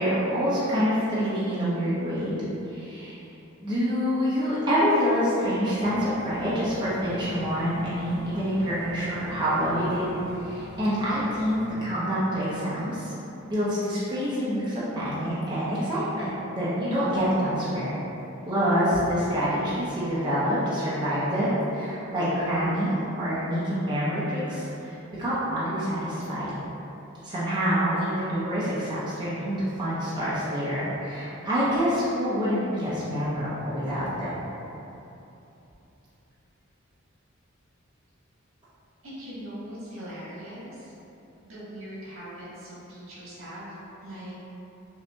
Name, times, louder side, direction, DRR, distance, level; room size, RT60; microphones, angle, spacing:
voice 1, 0.0-3.1 3.6-13.1 13.4-18.0 18.4-26.5 27.2-34.4, equal, 20° right, -11 dB, 0.7 m, -26 dB
Engine, 5.8-11.7, left 2 dB, 85° left, 1.4 m, -43 dB
voice 2, 39.0-40.9 41.4-43.7 44.0-44.3, equal, 70° right, -9 dB, 1.4 m, -40 dB
5.5 x 2.7 x 2.2 m, 3.0 s
head